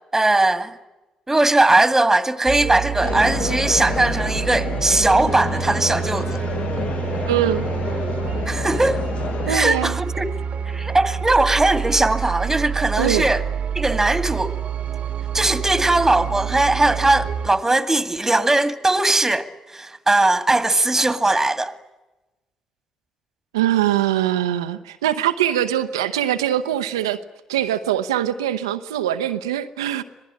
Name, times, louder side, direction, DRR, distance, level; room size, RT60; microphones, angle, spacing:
voice 1, 0.1-0.8 1.3-6.4 8.5-9.0 9.5-10.3 10.7-13.4 13.7-14.5 15.3-21.7, right 2 dB, 15° right, 2.1 m, -19 dB
sound 1, 2.5-17.5, right 8 dB, 50° right, 1.3 m, -27 dB
sound 2, 3.0-9.6, left 6 dB, 50° left, 1.2 m, -29 dB
voice 2, 7.3-7.7 9.5-10.0 13.0-13.3 23.5-27.2 27.5-30.0, right 11 dB, 85° right, 0.8 m, -22 dB
26.0 x 19.0 x 9.9 m
hypercardioid pair, 45°, 3 cm